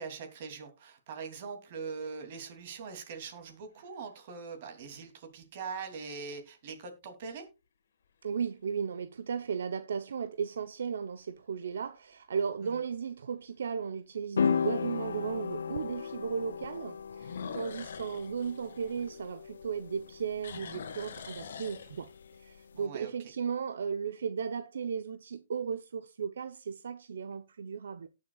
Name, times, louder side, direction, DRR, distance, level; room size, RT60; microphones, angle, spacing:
voice 1, 0.0-7.5 12.6-12.8 22.8-23.3, right 5 dB, 35° right, 2.9 m, -42 dB
sound 1, 3.5-4.2 4.9-5.0 10.2-10.6 11.1-11.2 11.8-11.9 12.1-12.2 13.7-13.8 17.2-19.7 20.0-22.4, left 6 dB, 60° left, 1.6 m, -45 dB
voice 2, 8.2-22.1 22.4-28.1, right 6 dB, 70° right, 0.8 m, -35 dB
sound 2, 14.4-22.8, left 6 dB, 75° left, 0.4 m, -36 dB
18.0 x 6.6 x 2.4 m
hypercardioid pair, 165°, 0 cm